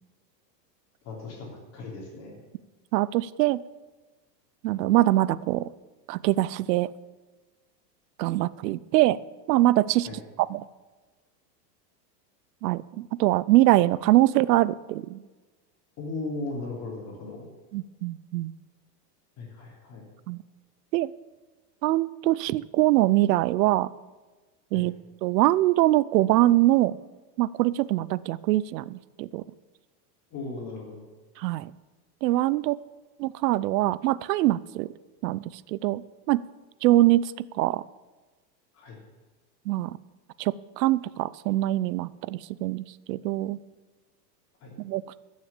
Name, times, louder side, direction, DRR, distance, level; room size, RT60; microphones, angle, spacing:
voice 1, 1.0-2.4 10.0-10.2 16.0-17.5 19.4-20.1 24.7-24.9 30.3-31.0 38.7-39.0 44.6-44.7, left 3 dB, 30° left, -1 dB, 3.1 m, -37 dB
voice 2, 2.9-3.6 4.6-5.7 6.1-6.9 8.2-9.2 9.5-10.6 12.6-15.2 17.7-18.5 20.3-20.4 20.9-21.1 21.8-23.9 24.7-24.9 25.2-27.0 27.4-29.4 31.4-31.7 32.2-32.8 33.2-34.9 35.2-36.4 36.8-37.8 39.7-40.0 40.4-43.6 44.8-45.2, right 16 dB, 75° right, 20 dB, 0.6 m, -23 dB
14.0 x 6.4 x 7.2 m, 1.3 s
supercardioid pair, 155°, 49 cm